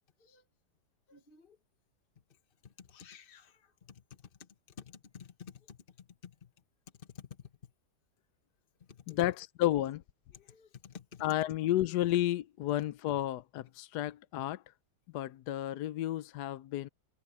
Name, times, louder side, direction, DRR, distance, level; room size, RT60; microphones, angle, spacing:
voice 1, 1.1-1.6 2.3-2.4 2.6-6.5 6.9-7.5 8.8-9.4 10.3-11.3, left 7 dB, 35° left, 1.5 m, -52 dB
voice 2, 9.1-10.0 11.2-14.6 15.1-16.9, left 13 dB, 80° left, 1.2 m, -32 dB
omnidirectional pair, 1.8 m